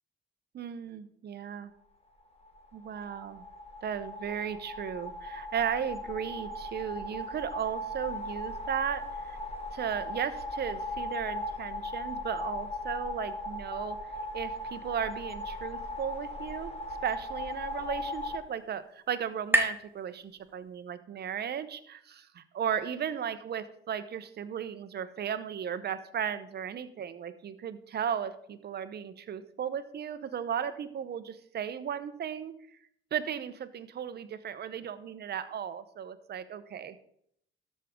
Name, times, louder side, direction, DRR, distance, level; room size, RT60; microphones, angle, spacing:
voice 1, 0.5-1.7 2.7-3.4 3.8-9.4 9.7-14.0 14.3-16.7 17.0-32.5 33.1-37.0, right 8 dB, 55° right, 12 dB, 0.9 m, -35 dB
sound 1, 2.5-18.4, left 1 dB, 30° left, 1.8 m, -38 dB
sound 2, 17.2-20.9, right 2 dB, 10° right, 1.1 m, -35 dB
13.0 x 6.4 x 3.7 m, 0.69 s
cardioid pair, 90°, 20 cm